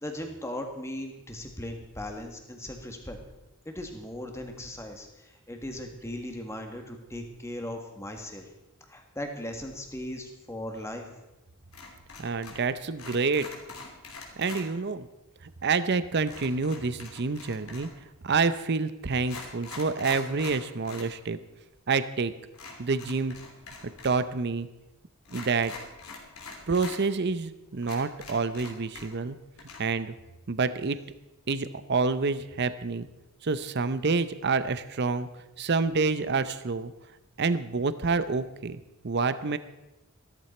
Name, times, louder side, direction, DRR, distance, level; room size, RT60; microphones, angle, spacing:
voice 1, 0.0-3.2 3.7-8.5 8.9-11.0, left 1 dB, 15° left, 4 dB, 1.7 m, -38 dB
sound 1, 11.7-12.7 12.9-14.7 16.3-18.0 18.7-18.8 19.2-21.1 21.4-21.5 22.5-24.2 24.5-24.6 25.2-27.0 27.4-27.5 27.8-29.3 29.6-29.8, left 4 dB, 85° left, 3.1 m, -44 dB
voice 2, 12.2-13.5 14.4-15.1 15.6-17.9 18.2-21.4 21.9-22.3 22.8-23.3 24.0-24.7 25.3-25.7 26.7-29.4 29.8-30.1 30.5-31.0 31.5-33.1 33.4-35.3 35.6-36.9 37.4-39.6, right 4 dB, 50° right, 13 dB, 0.6 m, -28 dB
14.5 x 13.5 x 4.3 m, 0.98 s
head